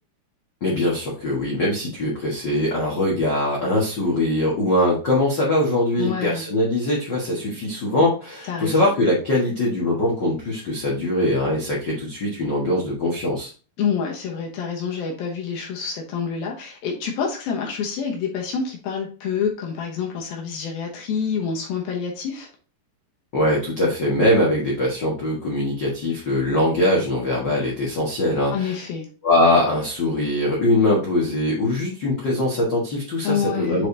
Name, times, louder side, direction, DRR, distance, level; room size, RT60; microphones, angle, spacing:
voice 1, 0.6-13.5 23.3-28.8 29.2-33.9, left 1 dB, 85° left, -4 dB, 0.9 m, -22 dB
voice 2, 6.0-6.4 8.5-8.9 13.8-22.5 28.5-29.1 33.2-33.9, left 6 dB, 70° left, 0 dB, 2.7 m, -27 dB
7.4 x 5.1 x 2.7 m, 0.36 s
omnidirectional pair, 4.7 m